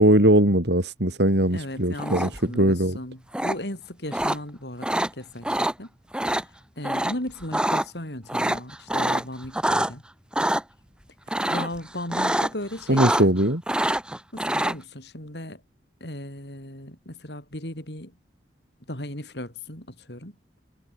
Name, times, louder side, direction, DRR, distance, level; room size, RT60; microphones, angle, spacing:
voice 1, 0.0-3.0 12.9-13.6, right 1 dB, 65° right, 4.4 m, -20 dB
voice 2, 1.5-5.9 6.8-10.0 11.5-13.3 14.3-15.6 16.0-18.1 18.9-20.3, left 1 dB, 65° left, 7.7 m, -36 dB
sound 1, 2.0-2.5 3.3-3.5 4.1-4.4 4.8-5.1 5.4-5.7 6.1-6.4 6.8-7.1 7.4-7.8 8.3-9.9 10.3-10.6 11.3-11.8 12.1-12.5 12.8-13.4 13.7-14.7, right 1 dB, 5° right, 1.8 m, -25 dB
head